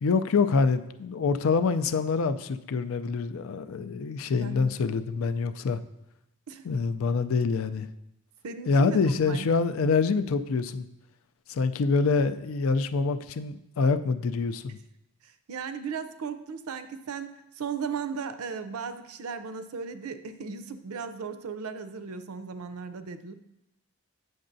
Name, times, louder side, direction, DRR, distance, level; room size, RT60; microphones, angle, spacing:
voice 1, 0.0-5.8 6.6-7.9 8.7-10.9 11.5-14.8, left 4 dB, 70° left, 9 dB, 0.4 m, -26 dB
voice 2, 4.4-4.7 6.5-6.6 8.4-9.5 15.2-23.3, right 5 dB, 85° right, 11 dB, 0.5 m, -36 dB
8.6 x 6.4 x 2.6 m, 0.86 s
head